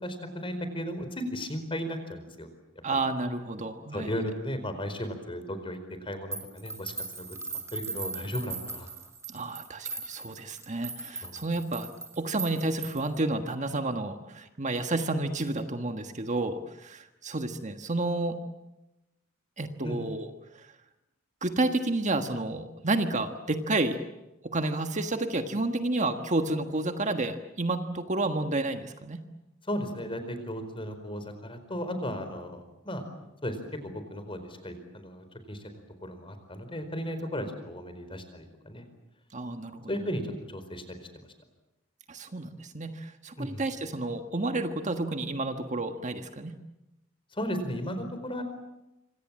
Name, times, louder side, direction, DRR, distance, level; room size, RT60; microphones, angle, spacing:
voice 1, 0.0-2.5 3.9-7.3 7.5-8.9 11.2-11.4 19.8-20.1 29.7-33.0 33.4-33.6 33.8-35.6 36.0-38.8 39.9-41.0 43.4-43.6 47.3-48.4, equal, 25° left, 9 dB, 4.6 m, -35 dB
voice 2, 2.8-4.1 9.3-11.9 12.2-18.4 19.6-20.3 20.6-20.7 21.4-24.0 24.4-29.2 39.3-39.9 42.1-46.5, right 2 dB, 35° right, 7 dB, 1.5 m, -30 dB
sound 1, 6.3-13.2, right 4 dB, 15° right, 3.7 m, -39 dB
27.0 x 26.0 x 7.6 m, 0.94 s
head